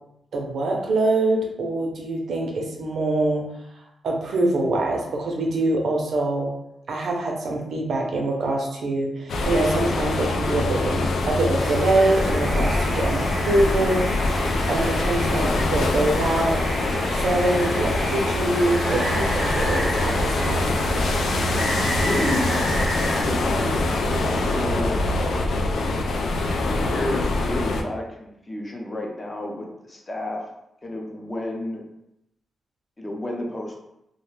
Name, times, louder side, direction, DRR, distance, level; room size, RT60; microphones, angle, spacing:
voice 1, 0.3-3.5 4.0-6.5 6.9-14.1 14.7-16.6 17.1-20.7, right 2 dB, 75° right, 0 dB, 0.5 m, -24 dB
sound 1, 9.3-27.8, left 2 dB, 75° left, 0.3 m, -24 dB
Water, 11.6-23.2, right 1 dB, 25° right, 0.4 m, -31 dB
voice 2, 22.0-22.7 23.2-25.5 26.5-30.5 30.8-31.8 33.0-33.7, left 1 dB, 25° left, 0 dB, 0.5 m, -31 dB
2.3 x 2.1 x 3.1 m, 0.82 s
cardioid pair, 105°, 0 cm